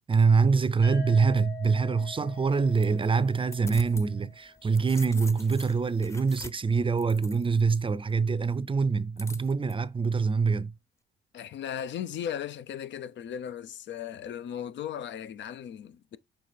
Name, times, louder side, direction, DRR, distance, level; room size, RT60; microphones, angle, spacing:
voice 1, 0.1-10.7, right 5 dB, 25° right, 0.6 m, -25 dB
sound 1, 0.8-4.7, left 6 dB, 80° left, 2.7 m, -45 dB
sound 2, 2.3-4.1 4.5-7.8 9.2-9.7, left 2 dB, 15° left, 0.7 m, -45 dB
voice 2, 11.3-16.2, left 9 dB, 65° left, 0.7 m, -37 dB
6.7 x 3.4 x 4.3 m
cardioid pair, 90°, 20 cm